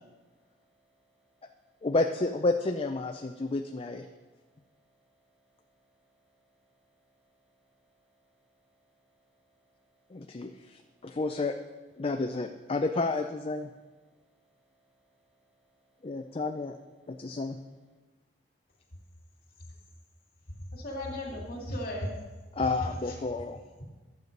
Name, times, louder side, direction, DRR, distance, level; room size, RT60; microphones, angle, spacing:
voice 1, 0.0-1.9 3.3-3.5 4.1-11.2 14.0-16.4 17.0-18.0, right 2 dB, 5° right, 0 dB, 1.4 m, -72 dB
voice 2, 1.8-4.1 10.1-11.5 12.0-13.7 16.0-16.8 17.1-17.6 22.6-23.6, left 3 dB, 35° left, 5 dB, 0.5 m, -30 dB
voice 3, 20.7-22.2 22.6-23.2, left 1 dB, 55° left, -1 dB, 2.7 m, -36 dB
12.0 x 8.1 x 5.3 m, 1.3 s
head